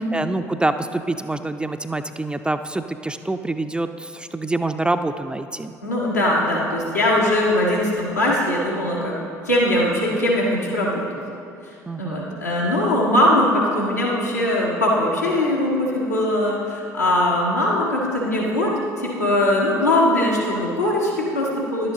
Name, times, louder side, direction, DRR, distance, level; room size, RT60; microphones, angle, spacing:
voice 1, 0.0-5.8 11.9-12.3, right 2 dB, 10° right, 8 dB, 0.4 m, -26 dB
voice 2, 5.8-9.2 9.4-11.0 11.6-21.9, left 1 dB, 90° left, -4 dB, 1.4 m, -21 dB
11.0 x 8.3 x 3.7 m, 2.5 s
figure-of-eight pair, 60°, 9 cm